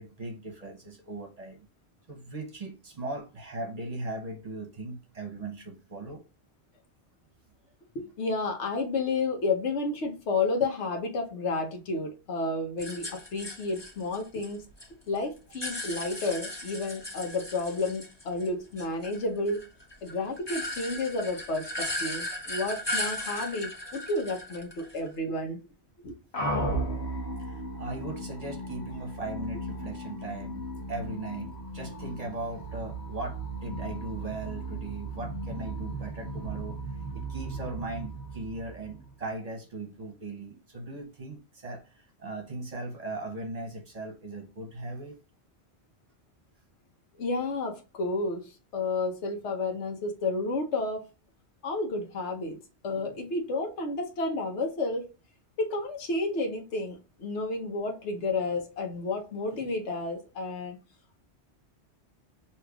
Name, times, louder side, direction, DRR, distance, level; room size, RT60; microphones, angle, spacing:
voice 1, 0.0-1.7 2.1-6.2 27.4-36.8 37.1-45.2, right 2 dB, 40° right, 0.8 m, -38 dB
voice 2, 7.9-14.7 15.1-19.6 20.0-25.6 26.0-26.1 47.2-51.0 51.6-52.6 52.8-55.1 55.6-60.8, left 3 dB, 90° left, 1.2 m, -31 dB
sound 1, 12.8-14.9 15.2-18.5 18.8-25.1, left 1 dB, 25° left, 1.0 m, -37 dB
sound 2, 26.3-39.2, right 1 dB, 70° left, 1.3 m, -36 dB
6.3 x 2.8 x 2.3 m
omnidirectional pair, 1.1 m